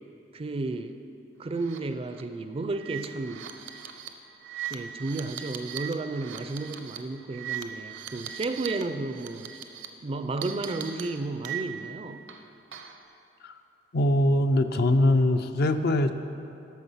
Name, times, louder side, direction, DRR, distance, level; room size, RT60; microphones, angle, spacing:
voice 1, 0.3-1.0 1.4-3.5 4.7-9.5 10.0-12.3, right 3 dB, 30° right, 9 dB, 0.4 m, -32 dB
sound 1, 1.6-1.8 2.1-2.2 2.7-8.8 9.1-9.9 10.4-11.9 12.3-13.0, right 9 dB, 70° right, 0.7 m, -39 dB
voice 2, 13.9-16.1, left 1 dB, 55° left, 8 dB, 0.5 m, -22 dB
12.0 x 6.2 x 5.7 m, 2.6 s
head